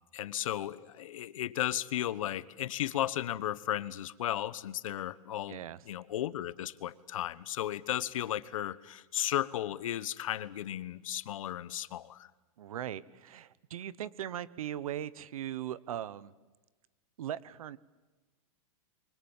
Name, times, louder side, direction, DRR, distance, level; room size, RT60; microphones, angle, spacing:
voice 1, 0.1-12.3, left 12 dB, 70° left, 17 dB, 1.2 m, -35 dB
voice 2, 5.5-5.8 12.6-16.3 17.2-17.8, right 11 dB, 80° right, 19 dB, 1.2 m, -39 dB
27.5 x 24.0 x 7.3 m, 1.2 s
supercardioid pair, 175°, 18 cm